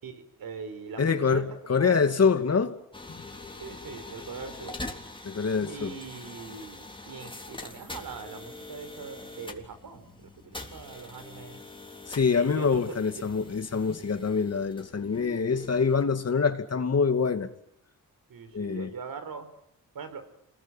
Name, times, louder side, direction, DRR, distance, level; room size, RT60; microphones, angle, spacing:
voice 1, 0.0-2.0 3.6-4.8 5.7-11.6 12.3-13.2 18.3-19.5 19.9-20.3, right 5 dB, 70° right, 4.5 m, -42 dB
voice 2, 1.0-2.7 3.1-3.2 5.2-5.9 12.1-17.5 18.5-18.9, left 5 dB, 45° left, 2.5 m, -25 dB
sound 1, 2.9-16.0, left 2 dB, 15° left, 3.5 m, -44 dB
27.5 x 21.5 x 9.2 m
cardioid pair, 85°, 36 cm